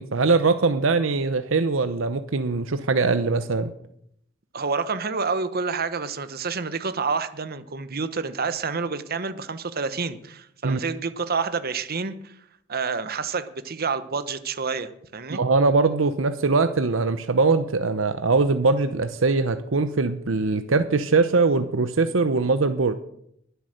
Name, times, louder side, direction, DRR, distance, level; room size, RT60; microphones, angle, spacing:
voice 1, 0.0-3.7 10.6-10.8 15.3-22.9, right 3 dB, 70° right, 10 dB, 0.8 m, -22 dB
voice 2, 4.5-12.4 12.7-15.4, right 4 dB, 50° right, 12 dB, 1.1 m, -28 dB
21.5 x 8.1 x 6.6 m, 0.74 s
head